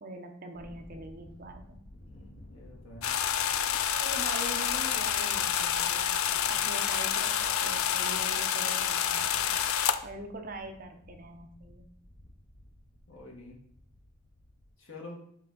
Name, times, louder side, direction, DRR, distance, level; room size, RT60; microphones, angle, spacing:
voice 1, 0.0-1.8 3.9-6.1 6.5-9.5 10.0-11.9, right 2 dB, 45° right, 5 dB, 0.7 m, -43 dB
Thunder, 0.5-14.8, left 1 dB, 45° left, 0.8 m, -52 dB
voice 2, 2.0-3.1 6.2-6.6 13.1-13.6 14.8-15.2, left 2 dB, 65° left, -1 dB, 1.6 m, -48 dB
sound 1, 3.0-10.0, left 9 dB, 85° left, 0.4 m, -28 dB
7.4 x 3.5 x 3.8 m, 0.65 s
head